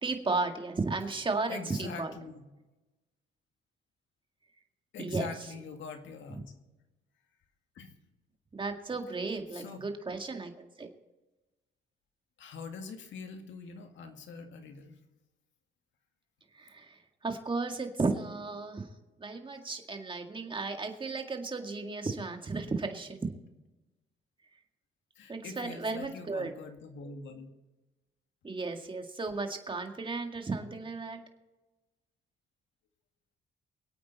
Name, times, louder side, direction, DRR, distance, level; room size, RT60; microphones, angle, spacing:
voice 1, 0.0-2.1 5.0-5.3 8.5-10.9 16.5-18.9 19.2-23.3 25.3-26.5 28.4-31.2, right 3 dB, 25° right, 5 dB, 1.9 m, -34 dB
voice 2, 1.5-2.4 4.9-6.5 7.8-7.9 9.5-9.8 12.4-15.0 25.2-27.5, left 4 dB, 70° left, 5 dB, 2.1 m, -43 dB
24.5 x 8.7 x 4.1 m, 1.1 s
cardioid pair, 90°, 20 cm